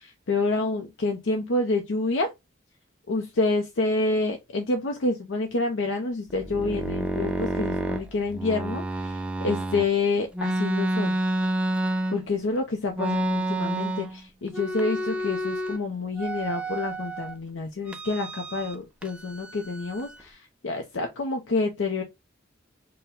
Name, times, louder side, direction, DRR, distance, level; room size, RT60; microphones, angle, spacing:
voice 1, 0.0-2.3 3.1-11.2 12.1-22.0, left 3 dB, 75° left, 0.6 m, -28 dB
sound 1, 6.3-9.9 10.3-12.5 12.9-14.2 14.5-15.8 16.2-17.3 17.9-18.8 19.0-20.2, right 1 dB, 5° right, 0.3 m, -29 dB
4.4 x 2.1 x 3.5 m
head